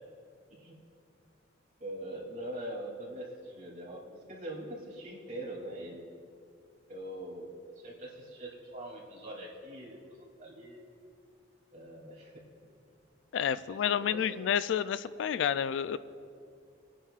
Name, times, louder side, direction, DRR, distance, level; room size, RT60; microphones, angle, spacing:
voice 1, 1.8-6.0 6.9-10.8 11.7-12.3 13.5-14.2, right 1 dB, 40° right, -4 dB, 2.8 m, -43 dB
voice 2, 13.3-16.0, left 8 dB, 75° left, 15 dB, 0.3 m, -30 dB
22.5 x 10.0 x 2.4 m, 2.4 s
head